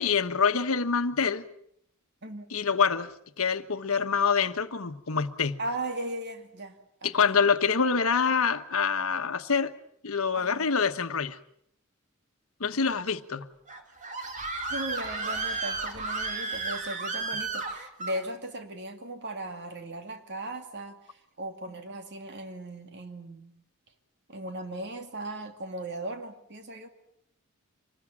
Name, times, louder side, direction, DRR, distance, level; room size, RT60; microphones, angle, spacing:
voice 1, 0.0-1.4 2.5-3.1 3.4-5.6 7.0-9.7 10.0-11.4 12.6-13.5, left 5 dB, 75° left, 1.2 m, -26 dB
voice 2, 5.6-7.3 10.3-10.7 14.7-23.5 24.3-26.9, right 1 dB, 55° right, 2.6 m, -37 dB
Screaming, 13.7-18.2, right 3 dB, 35° right, 2.7 m, -33 dB
25.5 x 20.0 x 7.4 m
head